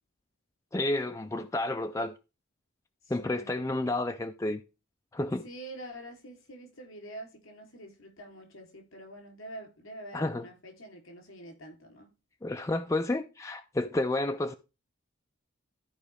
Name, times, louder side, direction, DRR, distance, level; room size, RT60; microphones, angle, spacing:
voice 1, 0.7-2.1 3.1-4.6 5.1-5.4 10.1-10.4 12.4-14.5, left 2 dB, 15° left, 0.3 m, -30 dB
voice 2, 3.0-3.7 5.4-12.1, right 1 dB, 75° left, 3.3 m, -46 dB
13.5 x 4.9 x 3.4 m
head